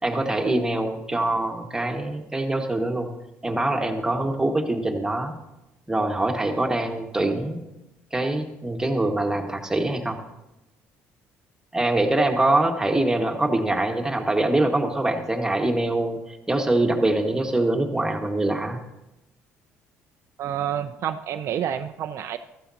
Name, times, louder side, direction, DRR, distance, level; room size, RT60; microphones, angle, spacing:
voice 1, 0.0-3.1 3.4-5.3 5.9-7.7 8.1-10.2 11.7-18.8, right 2 dB, 10° right, 2 dB, 1.7 m, -24 dB
voice 2, 20.4-22.4, right 9 dB, 60° right, 7 dB, 0.6 m, -28 dB
15.0 x 13.5 x 2.9 m, 0.93 s
supercardioid pair, 80°, 5 cm